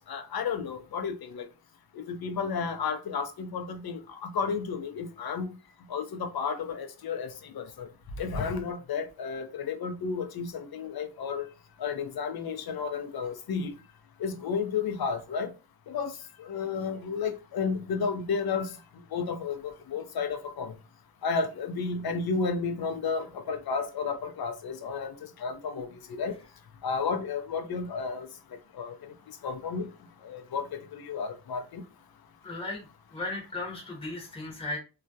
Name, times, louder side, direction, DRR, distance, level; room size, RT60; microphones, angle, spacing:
voice 1, 0.1-1.5 2.1-5.5 5.9-7.9 8.2-11.5 11.8-13.7 14.2-15.5 15.9-16.1 16.4-18.8 19.1-20.7 21.2-26.4 26.8-28.3 28.7-29.1 29.4-29.9 30.2-31.8, left 5 dB, 55° left, 0.5 m, -32 dB
voice 2, 32.4-32.8 33.1-34.8, left 2 dB, 15° left, 0.8 m, -35 dB
2.3 x 2.1 x 2.6 m
cardioid pair, 55°, 44 cm